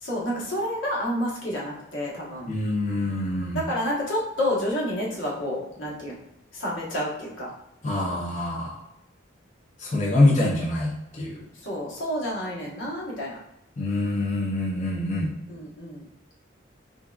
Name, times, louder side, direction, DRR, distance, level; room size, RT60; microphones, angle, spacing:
voice 1, 0.0-2.5 3.5-6.2 6.5-7.5 11.6-13.3 15.5-16.0, equal, 85° left, -5 dB, 1.2 m, -29 dB
voice 2, 2.5-3.6 7.8-8.7 9.8-11.4 13.8-15.3, left 2 dB, 40° left, -4 dB, 0.6 m, -25 dB
3.8 x 3.5 x 2.3 m, 0.85 s
head